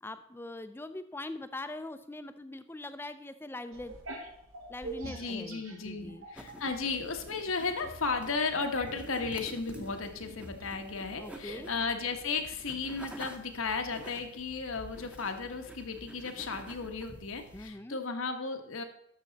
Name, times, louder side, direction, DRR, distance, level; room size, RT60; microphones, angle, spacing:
voice 1, 0.0-4.0 4.7-6.3 11.2-11.7 17.5-18.0, left 2 dB, 10° left, 11 dB, 0.4 m, -42 dB
sound 1, 3.7-6.6 7.0-11.7, right 2 dB, 90° right, 1.9 m, -45 dB
voice 2, 5.0-18.8, left 4 dB, 80° left, 5 dB, 1.2 m, -35 dB
sound 2, 6.4-17.7, right 1 dB, 5° right, 0.8 m, -49 dB
12.5 x 6.1 x 4.0 m, 0.74 s
head